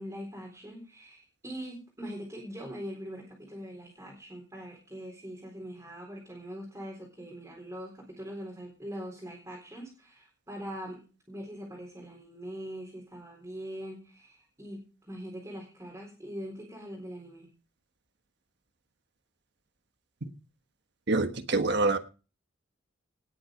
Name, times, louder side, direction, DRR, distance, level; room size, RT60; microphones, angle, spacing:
voice 1, 0.0-11.0 11.3-17.5, equal, 15° right, 4.2 m, -42 dB
voice 2, 21.1-22.0, right 3 dB, 55° right, 1.4 m, -25 dB
18.5 x 7.7 x 5.2 m
head